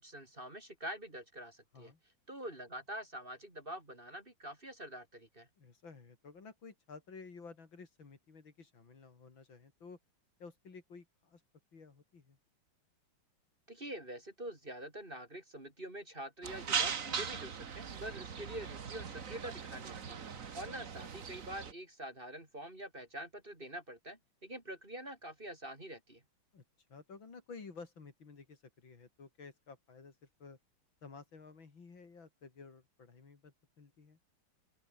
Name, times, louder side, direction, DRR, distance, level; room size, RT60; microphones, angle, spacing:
voice 1, 0.0-1.9 2.3-5.5 13.7-26.2, right 1 dB, 25° right, 3.8 m, -46 dB
voice 2, 5.6-10.0 10.4-11.4 11.7-12.4 20.3-20.5 26.5-26.6 26.9-30.6 31.0-34.2, left 4 dB, 60° left, 3.8 m, -53 dB
sound 1, 16.4-21.7, right 6 dB, 40° right, 1.7 m, -39 dB
open air
omnidirectional pair, 2.4 m